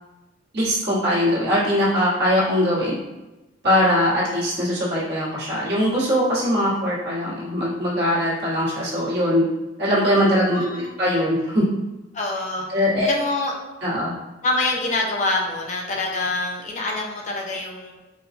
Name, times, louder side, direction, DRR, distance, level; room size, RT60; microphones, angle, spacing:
voice 1, 0.5-3.0 3.6-9.4 9.8-11.6 12.7-13.1 13.8-14.1, equal, 60° right, -8 dB, 1.4 m, -21 dB
voice 2, 12.1-13.5 14.4-17.9, left 2 dB, 40° left, -1 dB, 0.5 m, -26 dB
4.6 x 2.2 x 2.5 m, 1.1 s
head